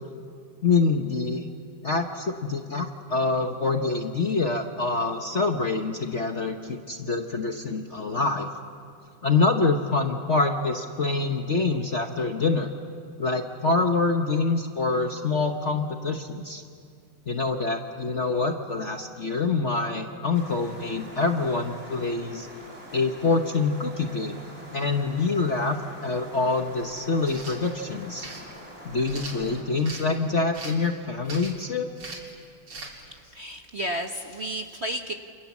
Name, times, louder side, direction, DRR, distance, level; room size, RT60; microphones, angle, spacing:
voice 1, 0.6-1.5 1.8-8.5 9.2-12.7 13.2-16.6 17.3-22.5 22.9-24.4 24.7-28.3 28.8-31.9, left 3 dB, 40° left, 4 dB, 1.2 m, -26 dB
sound 1, 20.3-29.6, equal, 15° right, 6.1 m, -45 dB
sound 2, 27.2-27.6 28.2-28.4 29.1-30.1 30.5-30.9 31.3-31.6 32.0-32.3 32.7-32.9, right 3 dB, 65° right, 4.2 m, -39 dB
voice 2, 33.1-35.1, right 1 dB, 40° right, 4 dB, 1.1 m, -32 dB
29.0 x 28.0 x 7.3 m, 2.3 s
omnidirectional pair, 2.4 m